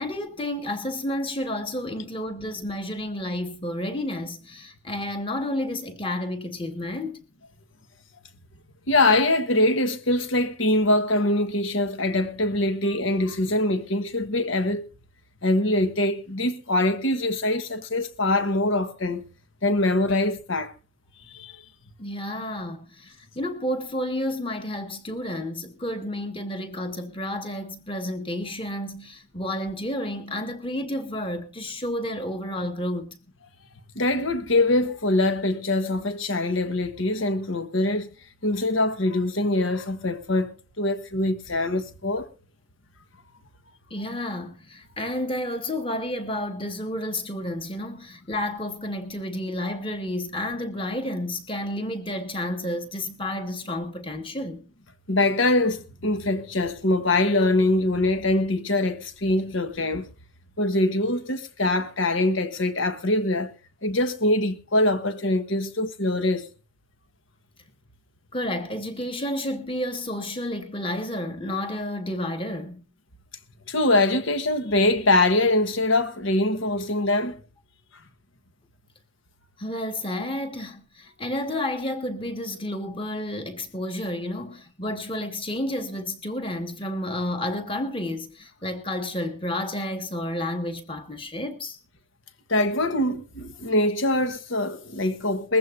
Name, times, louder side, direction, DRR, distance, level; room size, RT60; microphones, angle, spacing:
voice 1, 0.0-7.2 22.0-33.2 43.9-54.6 68.3-72.8 79.6-91.8, left 1 dB, 25° left, 1.8 m, -31 dB
voice 2, 8.9-14.9 15.4-19.2 19.6-20.7 21.3-21.6 33.9-38.1 38.4-42.3 55.1-60.1 60.6-63.5 63.8-66.5 73.7-77.4 92.5-95.6, left 2 dB, 70° left, 1.4 m, -23 dB
21.0 x 15.0 x 2.6 m
head